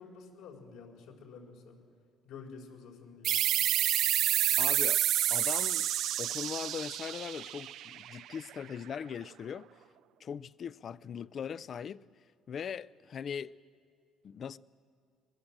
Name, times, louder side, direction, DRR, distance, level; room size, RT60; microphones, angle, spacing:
voice 1, 0.0-1.8 2.2-3.4, left 5 dB, 80° left, 4.4 m, -49 dB
sound 1, 3.2-8.5, right 12 dB, 65° right, 0.5 m, -29 dB
voice 2, 4.6-5.0 5.3-5.9 6.2-9.7 10.2-12.0 12.5-13.5 14.2-14.6, left 7 dB, 40° left, 0.5 m, -40 dB
22.5 x 20.5 x 7.5 m
cardioid pair, 120°, 0 cm